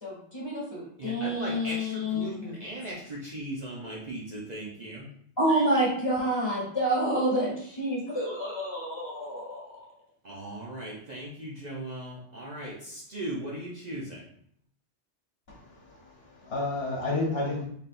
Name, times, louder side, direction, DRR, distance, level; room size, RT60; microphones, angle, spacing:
voice 1, 0.0-2.3 5.4-9.6, right 1 dB, 20° left, -5 dB, 1.7 m, -28 dB
voice 2, 1.0-5.1 10.2-14.2, right 1 dB, 45° right, -5 dB, 0.7 m, -38 dB
voice 3, 15.5-17.7, left 2 dB, 65° left, -3 dB, 1.2 m, -31 dB
4.1 x 3.4 x 2.5 m, 0.65 s
omnidirectional pair, 1.1 m